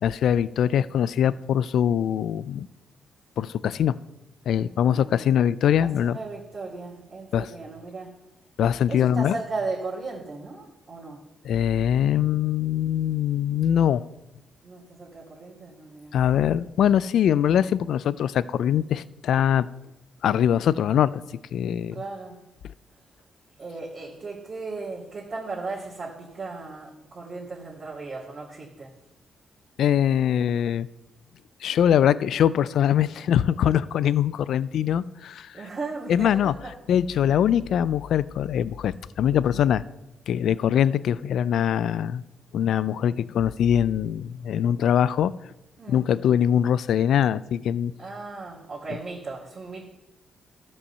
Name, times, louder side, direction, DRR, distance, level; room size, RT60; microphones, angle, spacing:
voice 1, 0.0-2.7 3.4-4.0 4.5-6.2 7.3-7.5 8.6-9.4 11.4-14.1 16.1-19.7 20.2-21.2 21.5-22.0 29.8-30.9 31.6-35.6 36.1-36.5 36.9-39.8 40.3-42.2 42.5-45.3 45.9-47.9, left 9 dB, 75° left, 18 dB, 0.3 m, -22 dB
voice 2, 4.8-5.4 5.8-8.2 8.9-11.2 14.6-16.2 21.9-22.4 23.6-28.9 33.0-33.1 34.1-34.2 35.5-36.7 45.8-46.1 48.0-49.8, right 3 dB, 40° right, -7 dB, 2.5 m, -36 dB
13.0 x 5.4 x 6.8 m, 0.94 s
cardioid pair, 105°, 0 cm